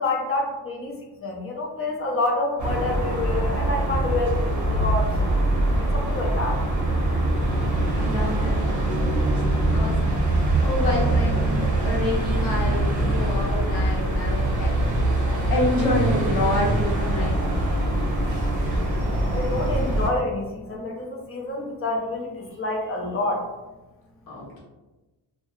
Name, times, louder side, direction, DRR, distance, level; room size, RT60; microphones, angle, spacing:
voice 1, 0.0-5.1 5.9-6.6 19.3-23.5, left 2 dB, 30° left, -1 dB, 0.5 m, -28 dB
sound 1, 2.6-20.1, right 1 dB, 40° right, 0.7 m, -23 dB
voice 2, 7.6-10.0 10.6-14.7 15.5-17.5 24.3-24.6, left 2 dB, 50° left, -6 dB, 0.8 m, -28 dB
2.4 x 2.0 x 3.0 m, 1.1 s
wide cardioid pair, 125°, 44 cm